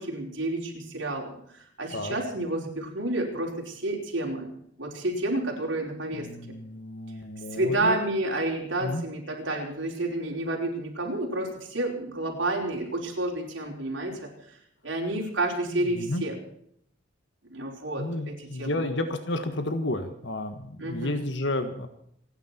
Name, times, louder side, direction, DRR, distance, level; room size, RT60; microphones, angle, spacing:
voice 1, 0.0-4.5 4.8-6.6 7.5-14.6 14.8-16.4 17.5-18.9 20.8-21.2, right 2 dB, 75° right, -1 dB, 4.9 m, -30 dB
voice 2, 6.2-8.0 8.8-9.1 15.7-16.2 18.0-21.9, left 1 dB, 65° left, 8 dB, 1.6 m, -31 dB
28.0 x 10.5 x 4.5 m, 0.69 s
head